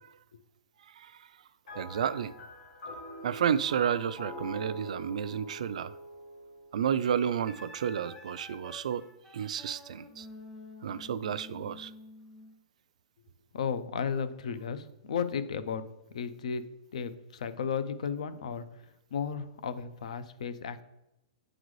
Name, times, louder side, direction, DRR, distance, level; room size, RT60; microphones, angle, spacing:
voice 1, 0.8-1.3 1.8-2.3 3.2-6.0 6.7-9.1 9.3-10.3 10.8-11.9, right 8 dB, 70° right, 0.3 m, -31 dB
sound 1, 1.7-7.2, equal, 85° left, 2.5 m, -44 dB
Wind instrument woodwind instrument, 7.2-12.5, left 2 dB, 5° left, 0.5 m, -50 dB
voice 2, 13.5-15.8 16.1-16.6 16.9-18.6 19.1-20.8, left 6 dB, 65° left, 0.5 m, -34 dB
9.0 x 3.9 x 3.1 m
hypercardioid pair, 180°, 4 cm